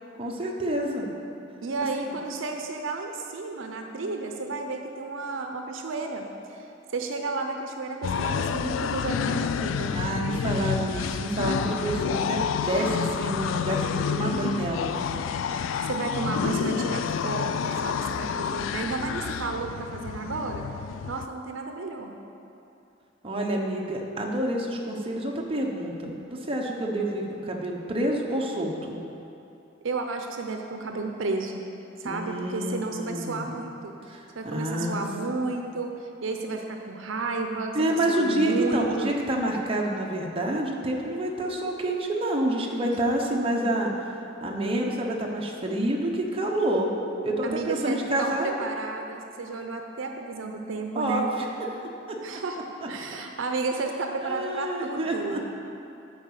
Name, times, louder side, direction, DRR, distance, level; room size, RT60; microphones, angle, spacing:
voice 1, 0.2-1.1 9.9-12.4 12.7-14.9 23.2-29.0 32.0-33.5 34.1-35.0 37.7-44.1 44.4-46.9 47.2-48.5 50.9-51.5 52.1-52.2 52.8-52.9 54.2-55.5, right 1 dB, 30° right, -1 dB, 0.9 m, -28 dB
voice 2, 1.6-6.7 6.9-9.9 15.5-20.7 21.1-22.1 29.8-31.6 32.0-33.9 34.3-37.7 38.1-39.2 47.4-51.3 52.2-52.6 52.8-55.5, right 3 dB, 75° right, 4 dB, 0.6 m, -32 dB
sound 1, 8.0-21.3, left 7 dB, 75° left, 0.3 m, -29 dB
9.1 x 4.7 x 6.5 m, 2.7 s
head